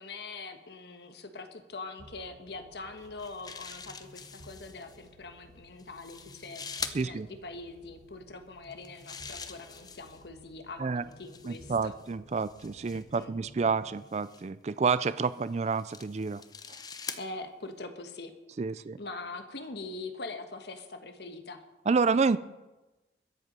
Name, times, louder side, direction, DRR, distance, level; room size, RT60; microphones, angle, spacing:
voice 1, 0.0-12.0 12.9-13.3 17.2-18.3 19.0-21.6, left 3 dB, 60° left, 7 dB, 1.4 m, -43 dB
sound 1, 2.0-14.0, equal, 60° right, 3.9 m, -56 dB
sound 2, 3.0-5.0 5.8-7.0 8.6-10.3 11.1-13.2 14.1-14.4 15.2-17.2, left 6 dB, 20° left, 0.7 m, -44 dB
voice 2, 6.9-7.3 10.8-11.0 11.5-16.4 18.6-19.0 21.9-22.4, right 5 dB, 35° right, 15 dB, 0.4 m, -29 dB
21.5 x 8.0 x 5.4 m, 1.1 s
head